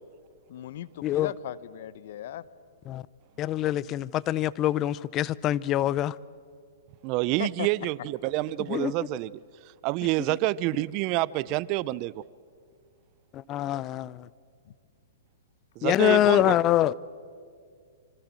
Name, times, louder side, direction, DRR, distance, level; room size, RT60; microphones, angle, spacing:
voice 1, 0.5-2.5 7.4-7.7 14.6-14.7 16.0-16.5, left 12 dB, 60° left, 1.0 m, -37 dB
voice 2, 3.4-6.1 8.7-8.9 13.3-14.3 15.8-16.9, left 13 dB, 30° left, 0.6 m, -25 dB
voice 3, 7.0-9.3 9.8-12.2 15.8-16.6, right 18 dB, 40° right, 0.5 m, -28 dB
26.0 x 25.5 x 7.5 m
hypercardioid pair, 120°, 0 cm